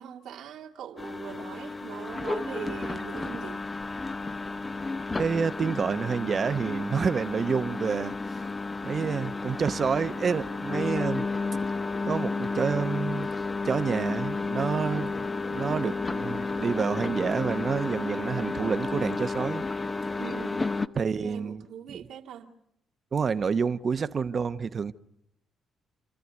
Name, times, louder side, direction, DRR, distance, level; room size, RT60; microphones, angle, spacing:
voice 1, 0.0-3.7 20.1-20.8 21.2-22.5, right 9 dB, 85° right, 2.2 m, -41 dB
sound 1, 1.0-20.9, left 3 dB, 20° left, 0.8 m, -32 dB
voice 2, 5.2-8.2 8.8-11.3 12.1-13.3 13.6-19.6 21.0-21.6 21.9-22.0 23.1-24.9, right 6 dB, 45° right, 0.9 m, -28 dB
29.0 x 14.0 x 9.6 m
cardioid pair, 90°, 0 cm